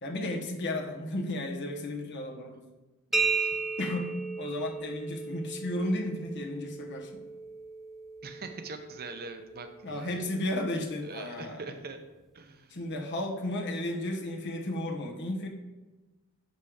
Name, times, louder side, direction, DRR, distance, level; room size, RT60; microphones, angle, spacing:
voice 1, 0.0-2.7 3.8-7.2 9.8-11.6 12.7-15.5, left 1 dB, 55° left, 1 dB, 1.2 m, -33 dB
sound 1, 3.1-10.7, right 4 dB, ahead, 0.5 m, -35 dB
voice 2, 3.1-3.5 8.2-10.2 11.0-12.0 12.3-12.8, right 3 dB, 45° right, 7 dB, 0.7 m, -43 dB
6.9 x 5.3 x 5.0 m, 1.1 s
head